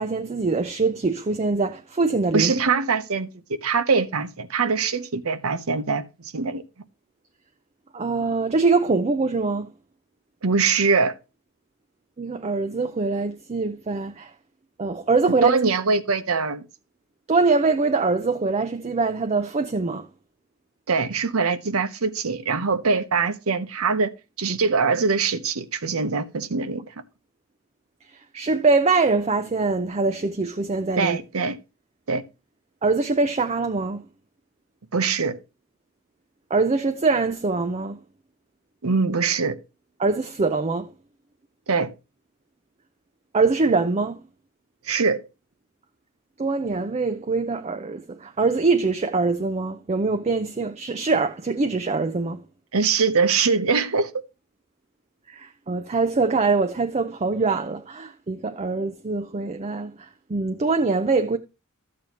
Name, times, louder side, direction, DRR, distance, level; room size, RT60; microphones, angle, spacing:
voice 1, 0.0-2.5 7.9-9.7 12.2-14.3 14.8-15.5 17.3-20.1 28.3-31.2 32.8-34.0 36.5-38.0 40.0-40.9 43.3-44.2 46.4-52.4 55.3-61.4, right 3 dB, 30° right, 0.5 m, -23 dB
voice 2, 2.3-3.3 3.6-6.6 10.4-11.1 15.4-16.6 20.9-24.1 24.4-26.8 31.0-31.6 32.1-32.2 34.9-35.4 38.8-39.6 41.7-41.9 44.9-45.2 52.7-54.2, right 4 dB, 85° right, 0.8 m, -23 dB
13.0 x 7.6 x 2.9 m
head